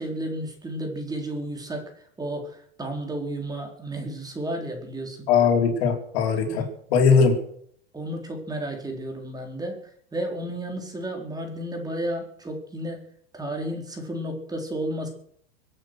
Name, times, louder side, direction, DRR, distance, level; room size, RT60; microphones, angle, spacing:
voice 1, 0.0-1.9 2.2-2.5 2.8-5.3 6.5-6.7 7.9-9.8 10.1-13.1 13.3-15.1, right 1 dB, 10° right, 3 dB, 4.1 m, -32 dB
voice 2, 5.3-7.4, left 6 dB, 65° left, 3 dB, 4.5 m, -20 dB
25.0 x 8.9 x 6.4 m, 0.66 s
supercardioid pair, 125°, 33 cm